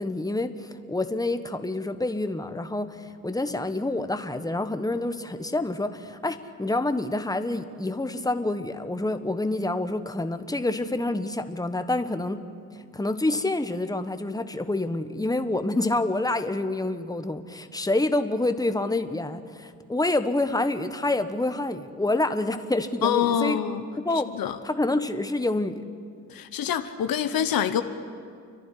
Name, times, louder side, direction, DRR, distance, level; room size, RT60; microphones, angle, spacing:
voice 1, 0.0-12.4 12.7-23.6 24.0-24.3 24.6-25.8, left 2 dB, 10° left, 9 dB, 1.3 m, -27 dB
voice 2, 23.0-23.8 24.3-24.6 26.3-27.8, left 9 dB, 80° left, 9 dB, 1.2 m, -25 dB
29.5 x 11.5 x 10.0 m, 2.2 s
cardioid pair, 60°, 35 cm